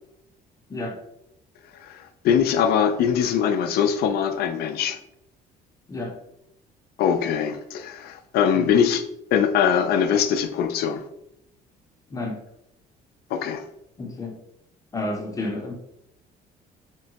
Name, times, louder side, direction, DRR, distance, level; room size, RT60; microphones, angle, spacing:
voice 1, 1.8-5.0 7.0-9.0 9.3-11.1 13.3-13.6, left 8 dB, 70° left, 8 dB, 0.4 m, -22 dB
voice 2, 14.0-14.4 14.9-15.7, left 2 dB, 20° left, 2 dB, 0.6 m, -30 dB
3.7 x 2.1 x 2.8 m, 0.80 s
cardioid pair, 110°, 17 cm